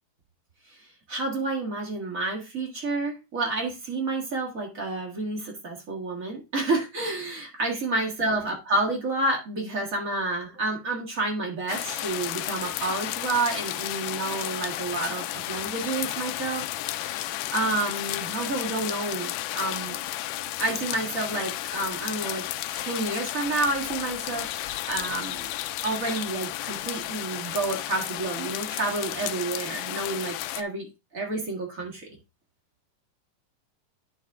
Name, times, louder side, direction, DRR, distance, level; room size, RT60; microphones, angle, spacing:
voice 1, 1.1-20.0 20.6-25.5 25.8-30.9 31.1-32.2, right 2 dB, 35° right, 0 dB, 1.4 m, -30 dB
sound 1, 11.7-30.6, left 15 dB, 80° left, 1.8 m, -33 dB
11.0 x 4.2 x 3.5 m, 0.26 s
omnidirectional pair, 3.9 m